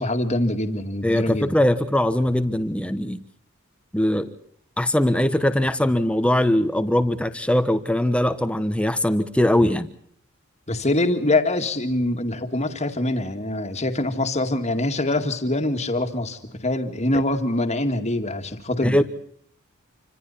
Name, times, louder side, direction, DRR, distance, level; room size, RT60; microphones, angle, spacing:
voice 1, 0.0-1.5 10.7-19.0, left 1 dB, 30° left, 7 dB, 2.2 m, -24 dB
voice 2, 1.0-3.2 3.9-4.3 4.8-9.9 18.8-19.0, left 1 dB, 5° left, 11 dB, 1.2 m, -21 dB
28.0 x 25.5 x 4.2 m, 0.65 s
head